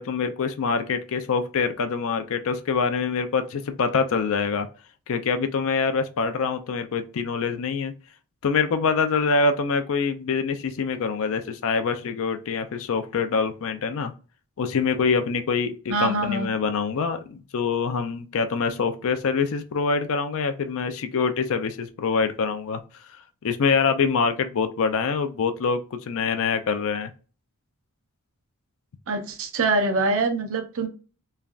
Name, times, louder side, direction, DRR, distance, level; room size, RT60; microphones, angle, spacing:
voice 1, 0.0-4.7 5.1-7.9 8.4-14.1 14.6-22.8 23.4-27.1, left 5 dB, 65° left, 0.4 m, -25 dB
voice 2, 15.9-16.5 29.1-30.9, right 2 dB, 65° right, 0.6 m, -24 dB
3.2 x 2.4 x 2.3 m
head